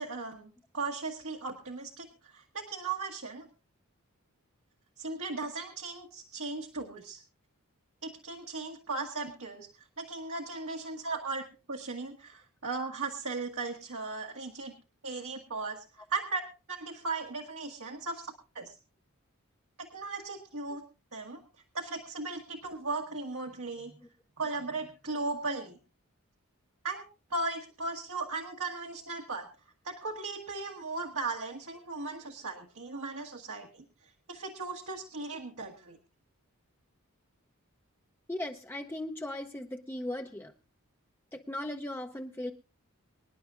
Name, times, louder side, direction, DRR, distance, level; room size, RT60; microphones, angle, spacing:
voice 1, 0.0-2.1 2.3-3.5 5.0-7.2 8.0-9.7 10.0-11.4 11.7-14.7 15.0-16.4 16.7-18.8 19.9-20.8 21.1-21.4 21.7-24.0 24.4-25.8 26.8-29.5 29.8-33.8 34.3-36.0, right 3 dB, 75° right, 0 dB, 1.5 m, -37 dB
voice 2, 38.3-40.5 41.3-42.5, left 1 dB, 10° left, 4 dB, 0.6 m, -37 dB
25.0 x 10.5 x 2.4 m, 0.31 s
head